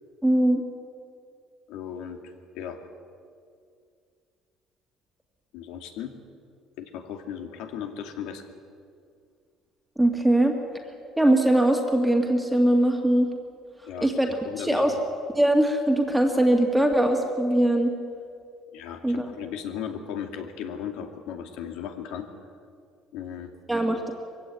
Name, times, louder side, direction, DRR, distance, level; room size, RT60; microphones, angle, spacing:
voice 1, 0.2-0.6 10.0-10.5 11.2-13.3 14.0-14.3 14.6-14.9 15.3-17.9 19.0-19.3 23.7-24.1, right 1 dB, 5° right, 2 dB, 2.1 m, -21 dB
voice 2, 1.7-2.8 5.5-6.1 6.8-8.4 13.9-14.1 14.4-15.0 18.7-22.3 23.1-23.5, left 8 dB, 85° left, 5 dB, 2.4 m, -36 dB
22.5 x 16.5 x 9.6 m, 2.3 s
cardioid pair, 135°, 0 cm